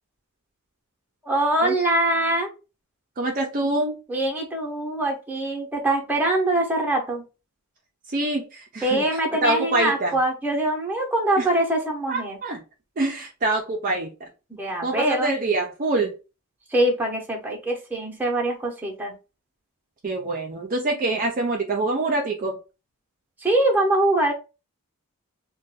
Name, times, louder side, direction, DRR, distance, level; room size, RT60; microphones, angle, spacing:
voice 1, 1.2-2.5 4.1-7.2 8.8-12.4 14.5-15.3 16.7-19.1 23.4-24.3, right 1 dB, 10° right, 0.8 m, -23 dB
voice 2, 3.2-4.0 8.1-9.0 9.4-10.1 11.4-11.5 12.1-12.6 13.0-14.1 14.8-16.1 20.0-22.6, right 2 dB, 40° right, 0.5 m, -25 dB
2.5 x 2.2 x 3.9 m
head